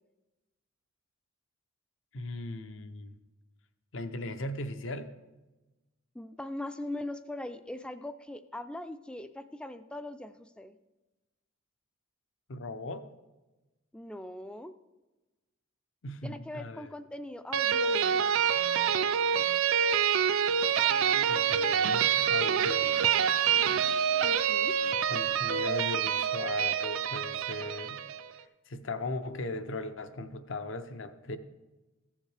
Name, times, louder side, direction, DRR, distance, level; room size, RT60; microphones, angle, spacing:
voice 1, 2.1-3.2 3.9-5.1 12.5-13.1 16.0-16.9 21.3-23.2 25.1-28.0 28.4-31.4, left 2 dB, 60° left, 10 dB, 0.6 m, -38 dB
voice 2, 6.1-10.7 13.9-14.7 16.2-18.3 24.2-24.7, left 1 dB, 5° left, 11 dB, 0.3 m, -41 dB
sound 1, 17.5-28.3, right 8 dB, 75° right, 0.4 m, -27 dB
15.0 x 7.2 x 3.3 m, 1.1 s
head